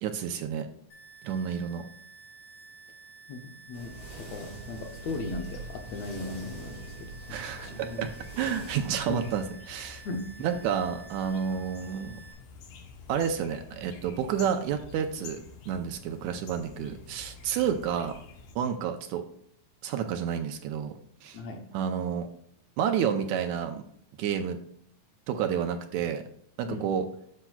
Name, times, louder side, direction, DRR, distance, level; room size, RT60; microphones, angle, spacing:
voice 1, 0.0-0.7 1.2-1.9 7.3-8.1 8.4-10.0 10.4-12.2 13.1-15.4 15.7-18.1 18.6-19.2 19.8-20.9 21.2-21.4 21.7-22.3 22.8-23.8 24.2-24.6 25.3-26.2 26.6-27.1, right 8 dB, 75° right, 6 dB, 1.9 m, -30 dB
sound 1, 0.9-12.3, right 4 dB, 25° left, 2.5 m, -51 dB
voice 2, 3.3-8.1 9.1-9.2 10.1-10.5 17.6-17.8 21.3-21.6 26.7-26.9, left 3 dB, 70° left, 3 dB, 1.8 m, -38 dB
sound 2, 3.7-9.4, right 2 dB, 45° left, 3.8 m, -43 dB
sound 3, 5.1-18.6, left 4 dB, 90° left, 2.6 m, -49 dB
12.0 x 6.0 x 2.3 m, 0.68 s
omnidirectional pair, 3.6 m